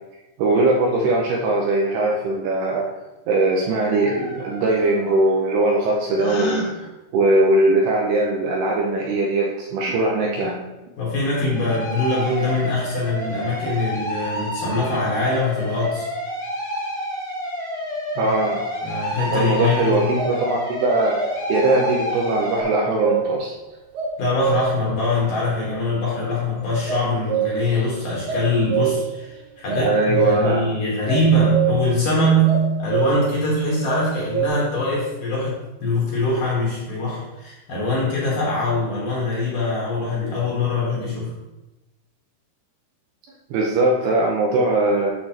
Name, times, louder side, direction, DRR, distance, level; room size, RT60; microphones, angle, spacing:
voice 1, 0.4-2.9 3.3-10.6 18.2-18.6 19.3-23.5 29.8-30.6 43.5-45.1, right 2 dB, 80° right, -1 dB, 2.4 m, -20 dB
sound 1, 3.8-5.3 11.4-22.6, equal, 15° left, 1.5 m, -30 dB
Gasp, 6.2-6.7, equal, 75° left, 3.8 m, -27 dB
voice 2, 11.0-16.1 18.2-18.3 18.8-20.1 24.2-41.3, left 1 dB, 60° left, -6 dB, 2.5 m, -23 dB
sound 2, 20.2-20.4 21.1-22.1 22.6-23.5 23.9-24.9 26.9-27.8 28.1-29.2 29.7-30.6 31.1-32.0 32.5-33.4 33.9-34.5, right 8 dB, 60° right, 3.0 m, -25 dB
8.7 x 6.7 x 2.9 m, 1.0 s
omnidirectional pair, 5.4 m